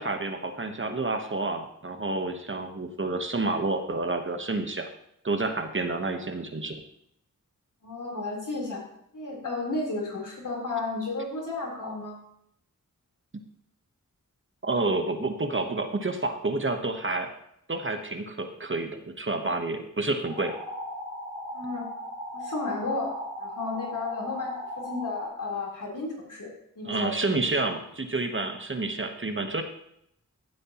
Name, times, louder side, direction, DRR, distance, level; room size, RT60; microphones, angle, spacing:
voice 1, 0.0-4.9 5.2-6.7 14.6-17.3 17.7-20.5 26.8-29.6, right 2 dB, 40° right, 5 dB, 1.1 m, -29 dB
voice 2, 7.8-8.8 9.1-12.2 21.5-21.9 22.3-23.1 23.4-26.5 26.8-27.3, left 3 dB, 70° left, -3 dB, 3.8 m, -33 dB
sound 1, 20.3-25.3, equal, 25° left, 4.0 m, -37 dB
15.0 x 7.8 x 3.0 m, 0.74 s
wide cardioid pair, 70°, 32 cm